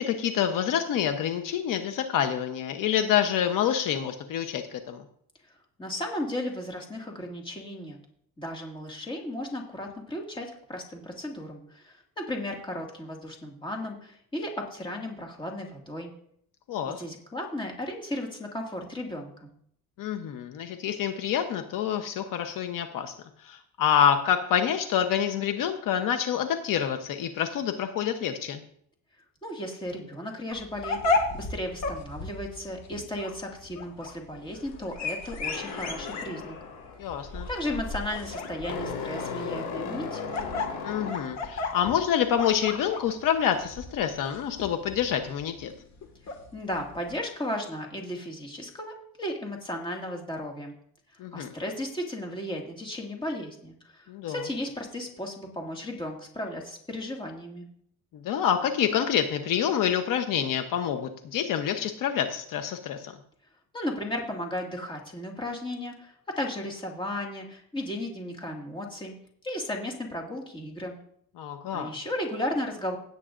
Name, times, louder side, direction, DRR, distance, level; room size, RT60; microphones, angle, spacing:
voice 1, 0.0-5.0 16.7-17.0 20.0-23.1 23.4-28.6 37.0-37.5 40.8-45.7 51.2-51.5 54.1-54.4 58.1-63.1 71.4-71.9, left 9 dB, 65° left, 7 dB, 0.9 m, -27 dB
voice 2, 5.8-8.0 8.4-16.1 16.9-19.5 29.4-36.6 37.5-40.3 46.2-50.7 51.3-57.7 63.7-69.1 69.4-71.0 71.7-73.0, left 1 dB, 15° left, 0 dB, 2.1 m, -35 dB
sound 1, 30.5-47.1, left 3 dB, 50° left, 1.9 m, -34 dB
sound 2, 35.4-41.6, left 5 dB, 80° left, 3.9 m, -37 dB
16.5 x 8.4 x 2.6 m, 0.66 s
cardioid pair, 150°, 36 cm